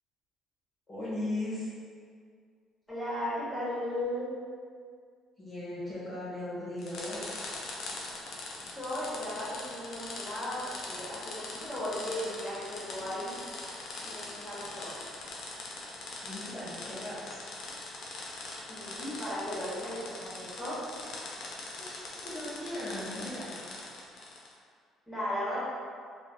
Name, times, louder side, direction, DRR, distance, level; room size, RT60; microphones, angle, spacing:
voice 1, 0.9-1.7 5.4-7.2 14.4-14.5 16.2-17.4 21.8-23.6, left 1 dB, 25° left, -11 dB, 0.8 m, -38 dB
voice 2, 2.9-4.3 8.8-13.3 14.0-14.9 18.7-20.8 25.1-25.6, left 1 dB, ahead, -9 dB, 1.1 m, -36 dB
sound 1, 6.8-24.5, left 2 dB, 65° left, 0.5 m, -42 dB
3.0 x 2.0 x 2.5 m, 2.1 s
cardioid pair, 110°, 0 cm